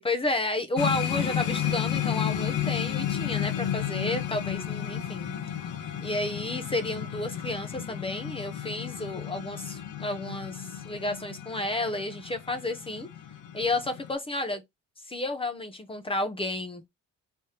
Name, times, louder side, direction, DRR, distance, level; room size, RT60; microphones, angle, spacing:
voice 1, 0.0-5.4 6.0-13.1 13.5-14.6 15.1-16.8, left 2 dB, 20° left, 0.7 m, -31 dB
sound 1, 0.8-14.1, left 10 dB, 75° left, 1.0 m, -32 dB
3.3 x 3.3 x 2.8 m
cardioid pair, 90°, 30 cm